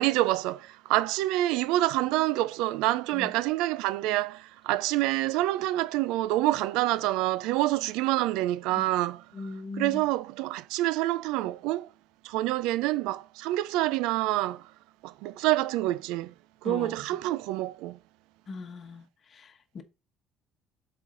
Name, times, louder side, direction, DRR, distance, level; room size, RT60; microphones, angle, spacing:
voice 1, 0.0-11.9 12.2-14.7 15.0-16.3 16.6-18.0, right 16 dB, 85° right, 0.3 m, -27 dB
voice 2, 9.3-10.0 16.6-16.9 18.5-19.0 19.3-19.8, left 3 dB, 40° left, 1.2 m, -39 dB
7.2 x 4.3 x 3.8 m
cardioid pair, 100°, 0 cm